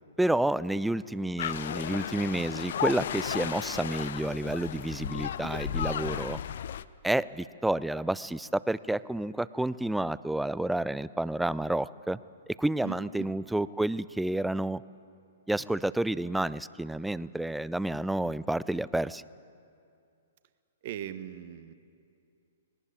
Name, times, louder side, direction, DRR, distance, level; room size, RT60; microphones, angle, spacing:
voice 1, 0.2-6.4 7.0-12.2 12.6-14.8 15.5-19.2, right 1 dB, 5° right, 18 dB, 0.4 m, -30 dB
sound 1, 1.4-6.8, left 9 dB, 55° left, 0.6 m, -34 dB
voice 2, 12.8-13.3 20.8-21.7, right 10 dB, 45° right, 12 dB, 1.1 m, -39 dB
20.0 x 18.5 x 8.5 m, 2.5 s
figure-of-eight pair, 115°, 0 cm